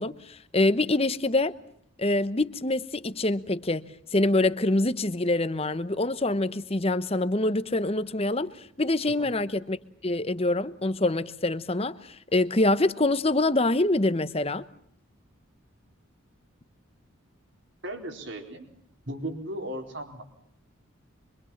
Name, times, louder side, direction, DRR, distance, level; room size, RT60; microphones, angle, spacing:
voice 1, 0.0-1.6 2.0-9.8 10.0-14.6, left 2 dB, 30° left, 1.0 m, -25 dB
voice 2, 17.8-18.7 19.1-20.2, right 1 dB, 60° right, 4.2 m, -36 dB
25.5 x 25.0 x 7.3 m
head